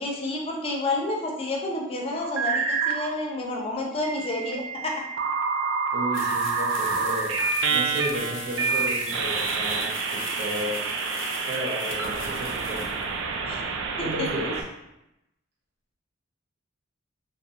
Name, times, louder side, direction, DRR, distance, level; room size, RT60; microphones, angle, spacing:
voice 1, 0.0-5.0 13.5-13.6 14.0-14.3, left 2 dB, 30° left, 0 dB, 0.5 m, -30 dB
sound 1, 2.2-3.1 4.0-14.6, right 4 dB, 75° right, 0.3 m, -28 dB
voice 2, 5.9-7.4 7.7-10.9 11.5-12.9 14.0-14.5, right 1 dB, 55° right, -3 dB, 0.7 m, -33 dB
sound 2, 6.1-13.0, left 4 dB, 85° left, 0.5 m, -40 dB
2.6 x 2.3 x 2.7 m, 0.90 s
head